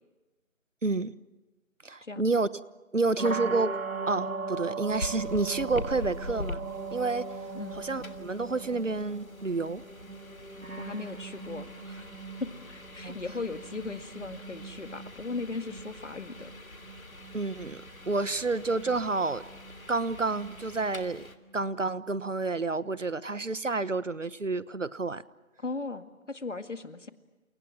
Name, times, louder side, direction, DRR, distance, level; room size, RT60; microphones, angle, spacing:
voice 1, 0.8-1.1 1.8-2.5 2.9-3.7 4.1-6.6 6.9-7.3 7.8-9.8 13.0-13.2 17.3-19.4 19.9-21.2 21.5-25.2, right 3 dB, 65° right, 17 dB, 1.3 m, -29 dB
sound 1, 3.2-23.0, right 4 dB, 85° right, 3.4 m, -41 dB
sound 2, 4.9-21.4, left 2 dB, 90° left, 3.3 m, -44 dB
voice 2, 10.8-12.1 12.4-16.5 25.6-27.1, left 3 dB, 60° left, 9 dB, 2.2 m, -38 dB
30.0 x 28.5 x 6.1 m, 1.2 s
figure-of-eight pair, 180°, 41 cm